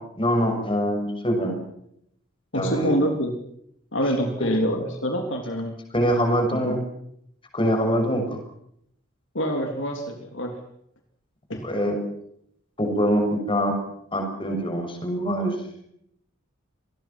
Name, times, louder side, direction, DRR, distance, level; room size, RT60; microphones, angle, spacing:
voice 1, 0.2-1.6 2.5-2.9 4.4-4.5 5.9-6.8 7.5-8.2 11.6-12.0 12.8-13.7 14.1-15.5, equal, 25° left, 4 dB, 6.4 m, -24 dB
voice 2, 2.5-3.4 3.9-5.7 6.6-6.8 9.3-10.6 11.5-11.7, equal, 60° left, 3 dB, 3.3 m, -26 dB
27.0 x 20.0 x 6.0 m, 0.72 s
head